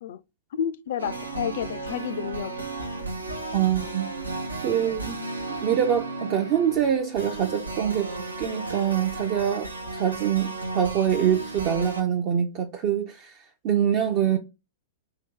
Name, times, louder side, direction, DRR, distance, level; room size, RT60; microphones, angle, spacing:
voice 1, 0.5-2.7, left 9 dB, 60° left, 0.3 m, -30 dB
sound 1, 1.0-12.0, right 3 dB, 85° right, 0.6 m, -34 dB
voice 2, 3.5-4.1 4.6-5.2 5.6-14.4, right 9 dB, 40° right, 0.4 m, -25 dB
2.8 x 2.8 x 3.5 m
figure-of-eight pair, 100°, 0 cm